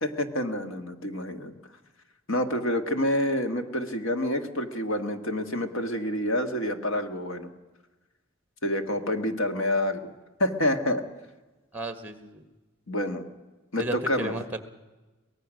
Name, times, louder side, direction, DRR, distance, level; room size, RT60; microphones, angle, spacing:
voice 1, 0.0-1.5 2.3-7.5 8.6-10.1 10.4-11.0 12.9-13.2 13.7-14.3, left 1 dB, 75° left, 7 dB, 1.7 m, -28 dB
voice 2, 11.7-12.4 13.8-14.6, right 1 dB, 10° right, 9 dB, 1.5 m, -34 dB
23.5 x 18.5 x 6.3 m, 1.2 s
head